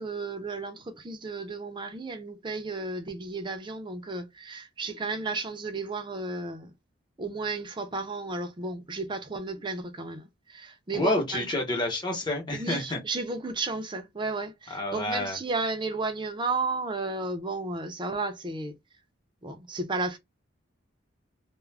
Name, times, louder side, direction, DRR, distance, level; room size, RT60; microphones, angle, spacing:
voice 1, 0.0-6.7 7.2-11.5 12.5-18.7 19.4-20.2, right 3 dB, 25° right, 0.5 m, -33 dB
voice 2, 10.9-13.0 14.7-15.4, left 1 dB, 25° left, 0.9 m, -29 dB
2.4 x 2.1 x 3.3 m
head